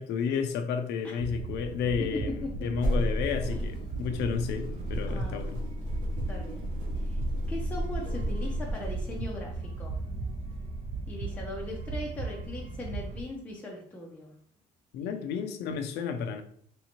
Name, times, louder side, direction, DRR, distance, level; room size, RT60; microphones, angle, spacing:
voice 1, 0.0-5.6 14.9-16.4, left 6 dB, 80° left, 7 dB, 0.5 m, -32 dB
sound 1, 1.2-13.2, right 3 dB, 40° right, 0.5 m, -37 dB
sound 2, 2.7-9.2, equal, 85° right, 1.3 m, -33 dB
voice 2, 5.1-5.4 6.3-6.7 7.0-7.2 7.5-10.0 11.1-14.3 15.0-15.4, left 1 dB, 10° left, -2 dB, 0.5 m, -40 dB
3.3 x 2.7 x 2.8 m, 0.62 s
cardioid pair, 110°, 17 cm